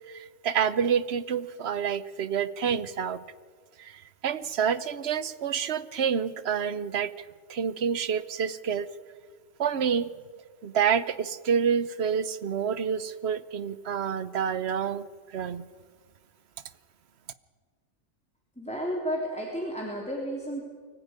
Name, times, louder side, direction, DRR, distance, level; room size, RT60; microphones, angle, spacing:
voice 1, 0.1-3.2 3.8-7.1 7.5-8.9 9.6-10.1 10.6-15.1 15.3-15.7, right 7 dB, 55° right, 15 dB, 1.1 m, -28 dB
voice 2, 18.6-20.6, equal, 5° left, -2 dB, 3.2 m, -32 dB
24.5 x 15.5 x 9.6 m, 1.6 s
omnidirectional pair, 1.4 m